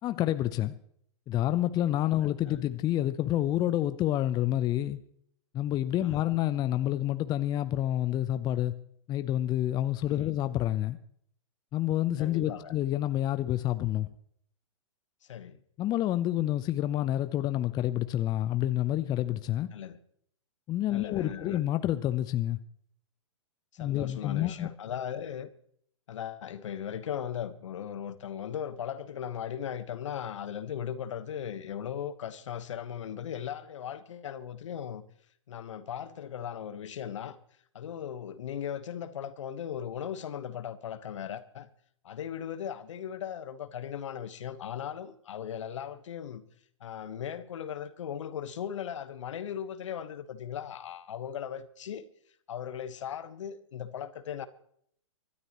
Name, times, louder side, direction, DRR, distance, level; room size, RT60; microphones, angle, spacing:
voice 1, 0.0-0.7 1.3-5.0 5.5-8.7 9.1-11.0 11.7-14.1 15.8-19.7 20.7-22.6 23.8-24.7, left 13 dB, 25° left, 0.7 m, -28 dB
voice 2, 2.1-2.6 6.0-6.3 10.1-10.3 12.2-12.7 15.3-15.6 19.7-20.0 20.9-21.6 23.7-25.5 26.1-35.0 35.5-37.4 37.7-41.7 42.0-46.4 46.8-52.1 52.5-54.5, left 9 dB, 65° left, 1.3 m, -38 dB
25.0 x 12.5 x 3.1 m
figure-of-eight pair, 115°, 17 cm